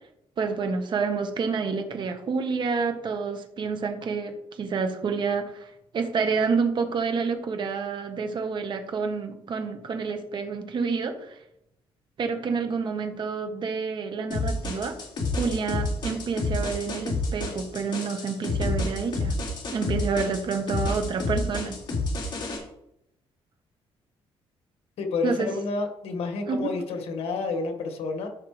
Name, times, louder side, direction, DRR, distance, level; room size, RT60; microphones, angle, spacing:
voice 1, 0.4-11.4 12.2-15.0 15.4-19.3 19.7-21.8 25.2-25.5 26.5-26.7, right 5 dB, 50° right, 6 dB, 1.3 m, -28 dB
sound 1, 14.3-22.6, left 2 dB, 45° left, 4.0 m, -29 dB
voice 2, 25.0-28.3, left 3 dB, 75° left, 4 dB, 1.8 m, -29 dB
14.5 x 5.7 x 3.4 m, 0.80 s
cardioid pair, 110°, 10 cm